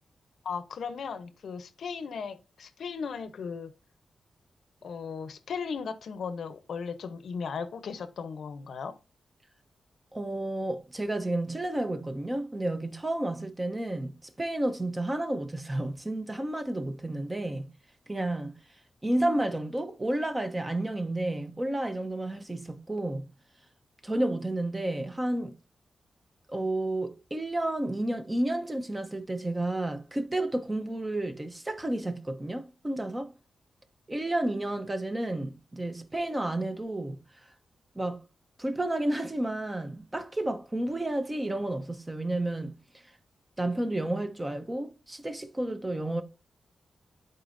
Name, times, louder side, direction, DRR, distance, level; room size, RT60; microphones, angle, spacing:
voice 1, 0.4-3.7 4.8-9.0, left 6 dB, 75° left, 0.7 m, -36 dB
voice 2, 10.1-17.7 18.1-18.5 19.0-23.3 24.0-25.5 26.5-33.3 34.1-37.2 37.9-38.2 38.6-42.7 43.6-46.2, right 1 dB, 15° right, 0.9 m, -31 dB
11.5 x 4.4 x 2.6 m
wide cardioid pair, 115°, 0 cm